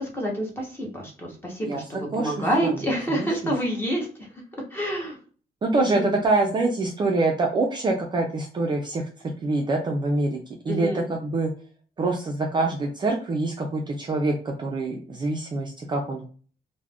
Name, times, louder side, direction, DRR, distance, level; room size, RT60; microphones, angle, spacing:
voice 1, 0.0-4.1 4.7-5.2 5.7-6.2 10.7-11.1, equal, 15° left, -1 dB, 0.8 m, -28 dB
voice 2, 1.6-2.8 3.1-3.5 5.6-9.0 9.4-10.4 10.7-11.5 12.0-16.3, right 2 dB, 25° right, 0 dB, 0.3 m, -25 dB
2.3 x 2.0 x 3.4 m, 0.42 s
cardioid pair, 165°, 17 cm